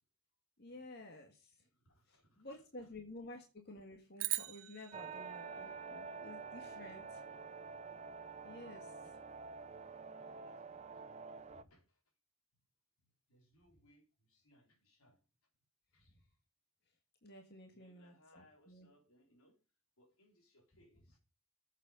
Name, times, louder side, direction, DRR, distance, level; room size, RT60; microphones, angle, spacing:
voice 1, 0.6-1.5 2.1-7.2 8.4-8.9 17.2-18.9, left 2 dB, 50° left, 1.7 m, -53 dB
voice 2, 1.7-2.5 3.2-3.3 5.1-6.3 6.6-7.7 8.6-8.7 9.0-9.2 10.1-10.8 11.1-12.0 13.3-15.2 15.9-16.2 17.7-19.6 20.0-21.2, left 1 dB, 85° left, 4.1 m, -69 dB
sound 1, 4.2-6.6, right 18 dB, 65° right, 0.7 m, -42 dB
sound 2, 4.9-11.6, right 5 dB, 30° right, 0.7 m, -48 dB
14.5 x 7.5 x 5.2 m
head